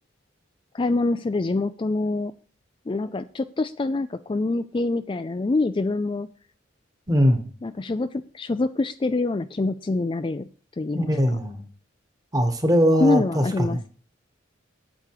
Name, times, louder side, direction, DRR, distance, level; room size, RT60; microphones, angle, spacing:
voice 1, 0.7-2.3 2.9-6.3 7.6-10.5 10.8-11.2 13.0-13.9, left 2 dB, 25° left, 10 dB, 0.3 m, -25 dB
voice 2, 7.1-7.4 10.9-11.6 12.3-13.8, equal, 20° right, 7 dB, 1.4 m, -21 dB
9.0 x 8.0 x 4.9 m, 0.43 s
head